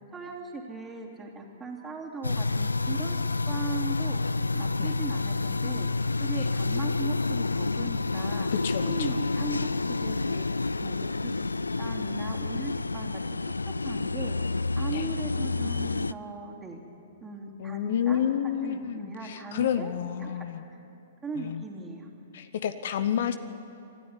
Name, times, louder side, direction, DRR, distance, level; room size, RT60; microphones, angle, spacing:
voice 1, 0.1-4.2 4.5-5.9 6.2-8.5 8.8-9.7 10.0-11.5 11.8-13.2 13.8-14.5 14.8-16.8 17.2-19.9 20.2-20.4 21.2-22.1, right 3 dB, 15° right, 0 dB, 3.1 m, -39 dB
sound 1, 2.2-16.1, left 3 dB, 85° left, 0.4 m, -29 dB
voice 2, 8.5-9.2 14.9-15.1 17.6-20.6 21.4-21.6 22.3-23.4, left 9 dB, 60° left, 12 dB, 0.9 m, -30 dB
26.5 x 12.5 x 9.8 m, 2.7 s
figure-of-eight pair, 115°, 0 cm